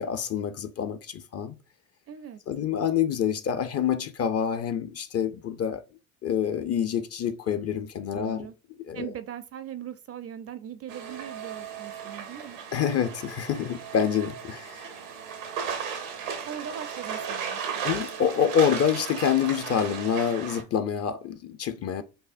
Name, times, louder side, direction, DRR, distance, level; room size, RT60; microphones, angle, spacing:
voice 1, 0.0-1.6 2.5-5.8 6.2-8.5 8.9-9.1 12.7-14.9 17.8-22.0, left 8 dB, 40° left, 0.5 m, -27 dB
voice 2, 2.1-2.4 8.1-8.5 8.9-12.6 16.4-17.9, right 9 dB, 40° right, 0.5 m, -40 dB
sound 1, 10.9-20.6, right 7 dB, 90° right, 0.9 m, -36 dB
5.4 x 2.1 x 2.5 m
hypercardioid pair, 60°, 39 cm